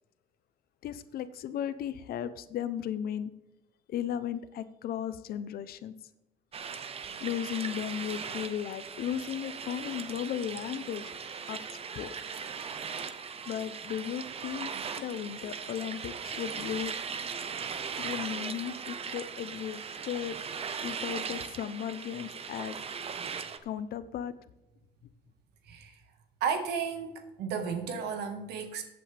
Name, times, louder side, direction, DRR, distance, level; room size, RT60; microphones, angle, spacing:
voice 1, 0.8-3.3 3.9-5.9 7.2-11.0 11.5-12.1 13.5-14.7 15.0-17.0 18.0-20.4 20.8-22.8 23.6-24.3, left 9 dB, 65° left, 14 dB, 0.8 m, -35 dB
sound 1, 6.5-23.6, right 6 dB, 35° right, 0.8 m, -39 dB
voice 2, 26.4-27.1 27.4-28.8, right 6 dB, 80° right, 6 dB, 1.7 m, -33 dB
15.0 x 8.4 x 3.4 m, 0.92 s
cardioid pair, 110°, 17 cm